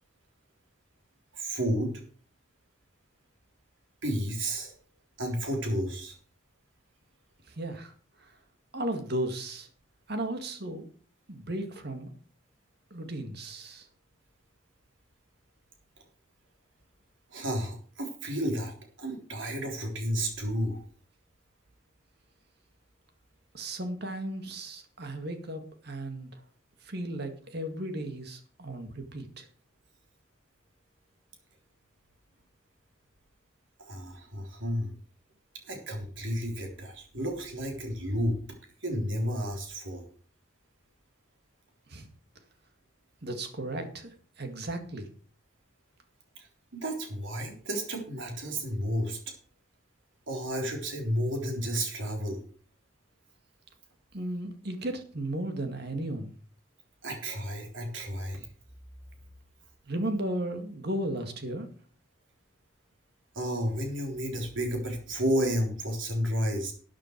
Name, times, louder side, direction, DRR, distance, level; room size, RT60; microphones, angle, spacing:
voice 1, 1.3-2.0 4.0-4.7 5.2-6.2 17.3-20.8 33.8-34.9 35.7-38.4 38.8-40.0 46.4-46.5 46.7-49.2 50.3-52.4 57.0-58.5 63.4-66.7, equal, 70° right, 3 dB, 3.6 m, -31 dB
voice 2, 7.6-7.9 8.7-9.7 10.1-10.9 11.3-12.1 12.9-13.8 23.5-26.3 26.9-29.4 41.9-42.1 43.2-44.1 44.4-45.1 54.1-56.3 59.9-61.7, right 1 dB, 55° right, 6 dB, 2.0 m, -35 dB
13.0 x 8.9 x 4.6 m, 0.42 s
head